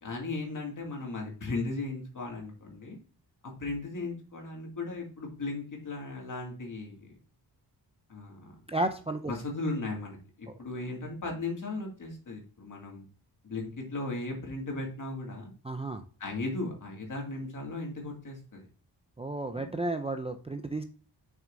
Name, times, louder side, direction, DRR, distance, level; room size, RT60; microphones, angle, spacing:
voice 1, 0.0-3.0 3.4-7.1 8.1-8.5 9.3-13.1 13.4-15.5 16.2-18.7 19.5-19.7, left 2 dB, 50° left, 0 dB, 2.2 m, -36 dB
voice 2, 8.7-9.3 15.6-16.0 19.2-20.8, right 2 dB, 15° right, 6 dB, 0.4 m, -32 dB
7.2 x 6.0 x 2.6 m, 0.39 s
wide cardioid pair, 180°, 40 cm